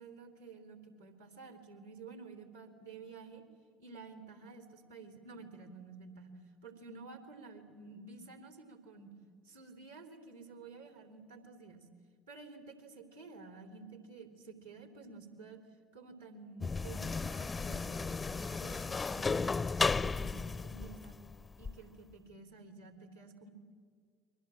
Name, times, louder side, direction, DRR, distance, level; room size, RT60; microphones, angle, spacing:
voice 1, 0.0-3.4 3.8-6.3 6.6-9.1 9.4-11.8 12.3-15.6 15.9-19.5 19.8-21.2 21.6-23.5, right 4 dB, 85° right, 5 dB, 3.5 m, -51 dB
sound 1, 16.6-21.8, left 4 dB, 25° left, 0.6 m, -34 dB
29.5 x 23.0 x 7.6 m, 2.1 s
figure-of-eight pair, 60°, 0 cm